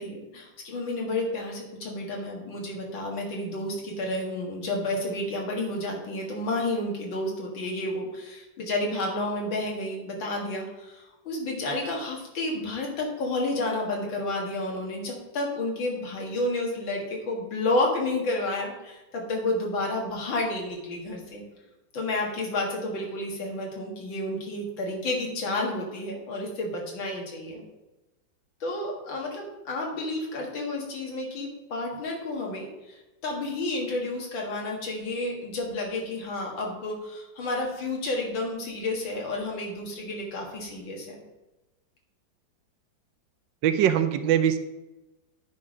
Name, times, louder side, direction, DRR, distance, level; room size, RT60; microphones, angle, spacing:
voice 1, 0.0-21.4 21.9-27.6 28.6-41.2, left 2 dB, 85° left, -1 dB, 2.5 m, -31 dB
voice 2, 43.6-44.6, right 9 dB, 75° right, 10 dB, 1.3 m, -22 dB
9.7 x 4.3 x 4.9 m, 1.0 s
omnidirectional pair, 2.1 m